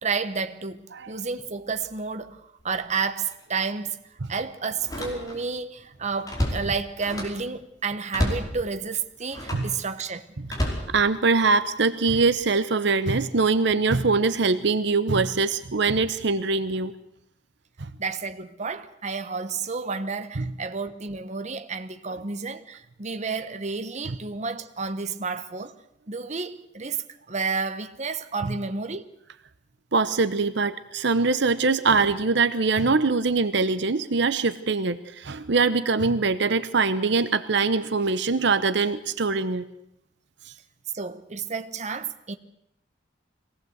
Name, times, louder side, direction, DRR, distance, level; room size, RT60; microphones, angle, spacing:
voice 1, 0.0-4.0 4.3-10.3 18.0-25.7 26.1-27.0 27.3-29.1 40.9-42.4, right 4 dB, 40° right, 1.1 m, -31 dB
Slam, 2.6-2.9 3.3-3.4 4.8-5.6 5.9-7.5 8.1-8.5 9.3-9.7 10.5-11.5 12.1-12.4, equal, 20° left, 5.1 m, -30 dB
voice 2, 10.9-16.9 17.8-17.9 20.4-20.5 24.1-24.2 28.4-28.5 29.9-39.6, right 4 dB, 70° right, 0.9 m, -23 dB
23.0 x 17.5 x 8.0 m
head